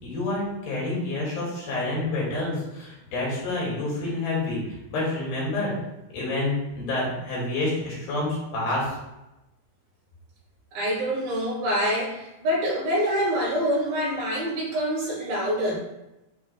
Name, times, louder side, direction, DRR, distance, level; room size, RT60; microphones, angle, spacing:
voice 1, 0.0-5.7 6.1-9.0, left 2 dB, 80° left, -4 dB, 3.8 m, -28 dB
voice 2, 10.7-15.8, equal, 80° right, -6 dB, 4.0 m, -26 dB
11.0 x 3.9 x 2.2 m, 0.94 s
omnidirectional pair, 4.1 m